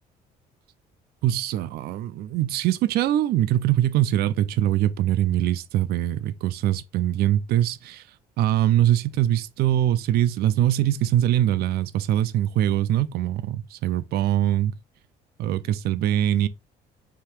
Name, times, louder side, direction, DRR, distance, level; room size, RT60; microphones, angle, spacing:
voice 1, 1.2-8.1 8.4-14.8 15.4-16.5, right 12 dB, 70° right, 0.4 m, -23 dB
3.6 x 2.8 x 4.5 m
cardioid pair, 110°, 17 cm